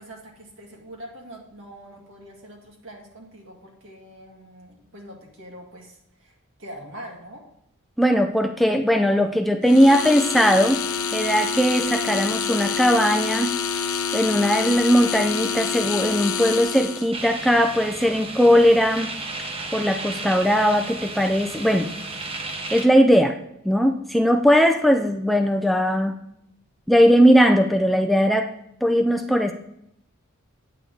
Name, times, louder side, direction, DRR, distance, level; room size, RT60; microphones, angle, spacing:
voice 1, 0.0-7.5, equal, 65° right, 0 dB, 2.2 m, -43 dB
voice 2, 8.0-10.8 11.1-13.6 14.1-19.2 19.7-21.9 22.7-23.4 23.6-26.1 26.9-28.5 28.8-29.5, equal, ahead, 5 dB, 0.4 m, -19 dB
sound 1, 9.6-17.1, left 6 dB, 85° left, 0.8 m, -27 dB
sound 2, 17.1-22.9, right 3 dB, 25° right, 0.9 m, -34 dB
9.0 x 8.0 x 3.9 m, 0.76 s
head